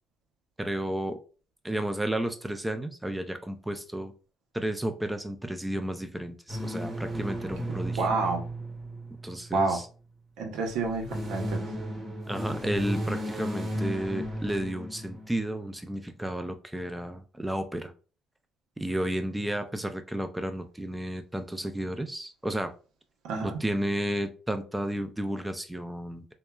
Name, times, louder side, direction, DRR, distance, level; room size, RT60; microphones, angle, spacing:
voice 1, 0.6-1.2 1.6-4.1 4.5-8.1 9.2-9.9 12.3-17.9 18.8-22.7 23.4-26.3, right 1 dB, 10° right, 8 dB, 0.4 m, -32 dB
sound 1, 6.5-9.9 10.8-15.6, equal, 35° right, 0.9 m, -34 dB
voice 2, 8.0-8.4 9.5-9.8 10.4-11.6 23.2-23.6, right 3 dB, 85° right, 2 dB, 0.7 m, -28 dB
2.9 x 2.1 x 2.2 m, 0.36 s
cardioid pair, 85°, 0 cm